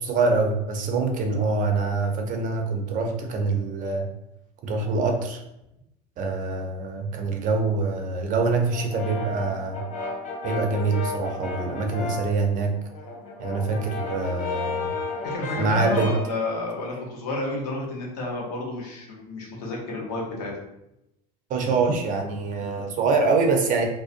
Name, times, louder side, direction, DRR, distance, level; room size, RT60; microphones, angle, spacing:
voice 1, 0.0-4.0 4.6-5.4 6.2-9.8 10.4-12.7 13.4-14.9 15.5-16.1 21.5-23.8, right 3 dB, 40° right, 3 dB, 0.5 m, -25 dB
Brass instrument, 8.7-12.4 12.8-16.4, left 3 dB, 35° left, 0.6 m, -33 dB
voice 2, 15.2-20.5, left 2 dB, 85° left, -2 dB, 0.8 m, -31 dB
2.5 x 2.1 x 2.4 m, 0.86 s
supercardioid pair, 100°, 20 cm